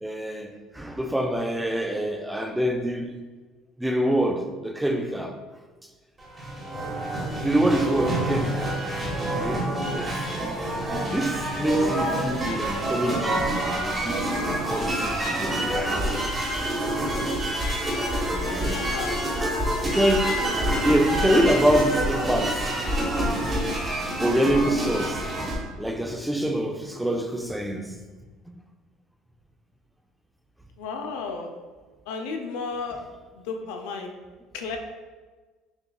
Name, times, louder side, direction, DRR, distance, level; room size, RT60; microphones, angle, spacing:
voice 1, 0.0-3.2 3.8-5.4 7.4-8.8 9.1-10.4 11.1-14.2 14.7-16.0 17.9-18.8 19.4-19.5 19.8-20.4 20.8-22.7 24.2-25.3 25.8-28.1, right 1 dB, 5° right, 0.3 m, -26 dB
sound 1, 6.2-25.6, right 1 dB, 25° right, 1.1 m, -27 dB
voice 2, 18.4-19.2 30.8-31.5 32.1-33.0 33.3-34.1 34.5-34.8, left 4 dB, 85° left, 0.4 m, -33 dB
6.6 x 2.3 x 2.2 m
supercardioid pair, 110°, 0 cm